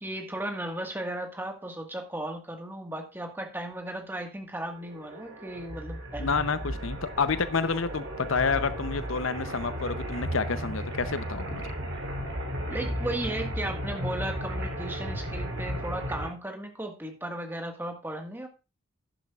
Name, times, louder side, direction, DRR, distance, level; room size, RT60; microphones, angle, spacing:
voice 1, 0.0-6.4 12.7-18.5, right 1 dB, 10° right, 3 dB, 1.6 m, -35 dB
sound 1, 4.7-16.3, equal, 60° right, 3.4 m, -34 dB
voice 2, 6.2-11.6, left 5 dB, 70° left, 12 dB, 0.8 m, -29 dB
11.5 x 11.0 x 2.4 m, 0.28 s
head